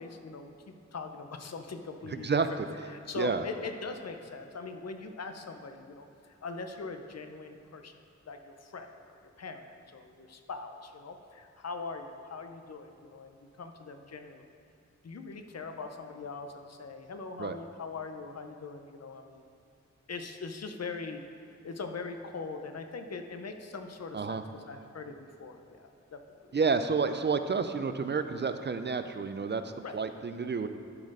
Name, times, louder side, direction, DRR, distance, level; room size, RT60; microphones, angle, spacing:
voice 1, 0.0-2.4 2.9-7.9 8.3-14.5 15.0-19.5 20.1-21.2 21.5-26.2 26.5-26.6 29.8-29.9, left 4 dB, 60° left, 6 dB, 0.7 m, -41 dB
voice 2, 2.1-2.5 3.2-3.4 17.4-17.5 24.1-24.4 26.5-30.7, right 5 dB, 40° right, 9 dB, 0.4 m, -30 dB
11.5 x 4.4 x 4.8 m, 2.6 s
wide cardioid pair, 90°, 29 cm